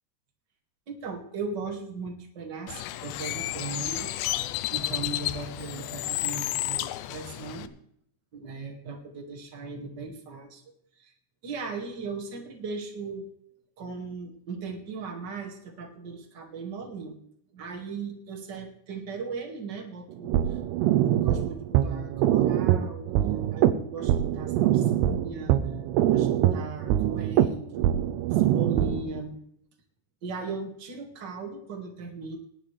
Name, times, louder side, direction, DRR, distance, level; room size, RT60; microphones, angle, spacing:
voice 1, 0.9-4.1 4.4-7.7 8.3-10.6 11.0-11.1 11.4-13.3 13.8-17.2 17.5-20.6 21.1-23.1 23.5-25.5 25.9-27.9 28.3-29.4 30.2-32.4, right 4 dB, 40° right, 2 dB, 1.6 m, -38 dB
Bird, 2.7-7.7, left 16 dB, 85° left, 2.9 m, -32 dB
sound 1, 20.1-29.2, right 11 dB, 80° right, 2.6 m, -24 dB
20.0 x 11.0 x 3.3 m, 0.67 s
omnidirectional pair, 5.2 m